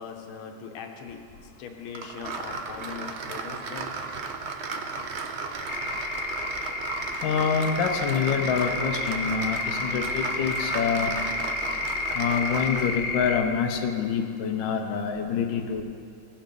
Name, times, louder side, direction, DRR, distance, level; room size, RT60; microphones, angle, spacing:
voice 1, 0.0-3.9, left 6 dB, 90° left, 3 dB, 1.8 m, -40 dB
sound 1, 1.9-13.1, right 4 dB, 65° right, 0.6 m, -34 dB
sound 2, 5.7-13.4, left 3 dB, 50° left, 0.7 m, -31 dB
voice 2, 7.2-11.1 12.1-15.8, left 6 dB, 70° left, 3 dB, 1.4 m, -26 dB
17.5 x 5.9 x 5.2 m, 2.4 s
omnidirectional pair, 2.2 m